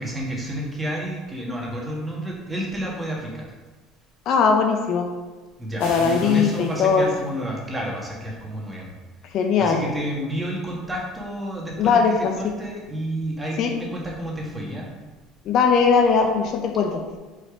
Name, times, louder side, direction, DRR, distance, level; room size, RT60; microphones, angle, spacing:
voice 1, 0.0-3.5 5.6-8.9 9.6-12.0 12.4-14.9, right 1 dB, 15° right, -3 dB, 1.7 m, -30 dB
voice 2, 4.3-5.1 5.8-7.1 9.3-9.8 11.8-12.3 13.6-13.7 15.4-17.0, left 5 dB, 55° left, 3 dB, 0.7 m, -19 dB
sound 1, 5.8-7.4, left 2 dB, 85° left, 1.7 m, -40 dB
5.0 x 4.3 x 4.9 m, 1.3 s
supercardioid pair, 100°, 0 cm